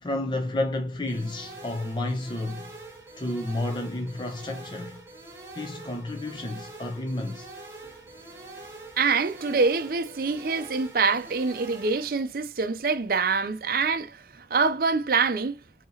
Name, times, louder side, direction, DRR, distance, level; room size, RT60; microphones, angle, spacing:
voice 1, 0.0-2.7 3.2-5.0 5.6-7.5, left 1 dB, 25° left, 0.5 m, -31 dB
sound 1, 1.1-12.1, right 2 dB, 15° right, 1.3 m, -44 dB
voice 2, 9.0-15.6, right 4 dB, 55° right, 0.5 m, -25 dB
5.3 x 2.8 x 2.8 m
head